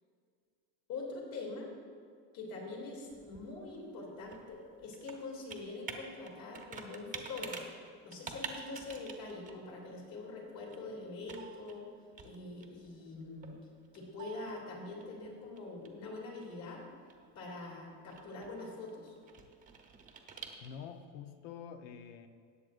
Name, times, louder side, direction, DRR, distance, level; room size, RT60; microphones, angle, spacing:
voice 1, 0.9-1.7 2.3-7.6 8.0-11.8 12.2-13.5 13.9-16.8 17.3-19.1, left 3 dB, 55° left, -2 dB, 2.9 m, -44 dB
Computer keyboard, 2.7-21.0, right 5 dB, 20° right, 0.8 m, -50 dB
voice 2, 20.6-22.3, left 7 dB, 75° left, 8 dB, 0.9 m, -47 dB
18.0 x 7.8 x 2.5 m, 2.2 s
cardioid pair, 155°, 36 cm